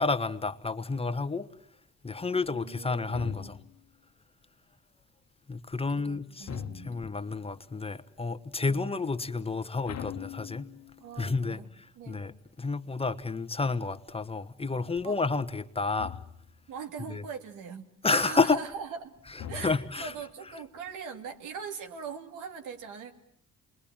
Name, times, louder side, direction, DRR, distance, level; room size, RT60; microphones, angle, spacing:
voice 1, 0.0-1.5 2.0-3.6 5.5-10.7 11.2-16.2 17.1-17.2 18.0-18.6 19.3-20.1, left 4 dB, 20° left, 1.2 m, -30 dB
voice 2, 2.5-3.6 6.0-7.1 8.7-8.8 11.0-11.7 11.9-12.2 15.0-15.2 16.7-19.2 19.5-23.2, right 6 dB, 90° right, 2.6 m, -41 dB
sound 1, 3.1-3.9 6.4-7.3 9.9-11.0 16.0-16.7 19.4-20.2, left 9 dB, 60° left, 1.2 m, -41 dB
28.0 x 22.0 x 8.9 m
cardioid pair, 90°, 30 cm